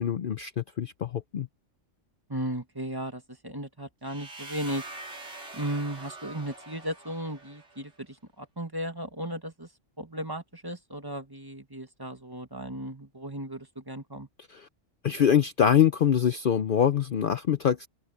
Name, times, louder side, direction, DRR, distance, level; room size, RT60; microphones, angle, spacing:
voice 1, 0.0-1.5 14.5-14.7 15.0-17.9, left 8 dB, 55° left, 0.7 m, -24 dB
voice 2, 2.3-4.8 5.5-9.7 10.0-14.3, right 1 dB, 20° right, 1.7 m, -35 dB
sound 1, 4.1-7.9, right 2 dB, 75° right, 4.9 m, -44 dB
omnidirectional pair, 1.3 m